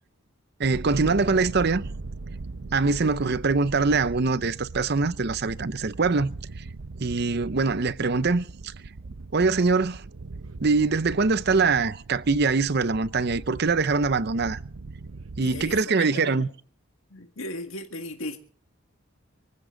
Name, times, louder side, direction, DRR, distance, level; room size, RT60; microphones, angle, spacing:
voice 1, 0.6-1.8 2.7-6.3 7.0-8.4 9.3-10.0 10.6-14.6 15.4-16.5, right 4 dB, 50° right, 0.7 m, -23 dB
sound 1, 0.6-15.8, right 3 dB, 80° right, 0.7 m, -40 dB
voice 2, 15.4-16.5 17.1-18.4, left 2 dB, 75° left, 1.9 m, -37 dB
24.0 x 15.0 x 3.9 m
head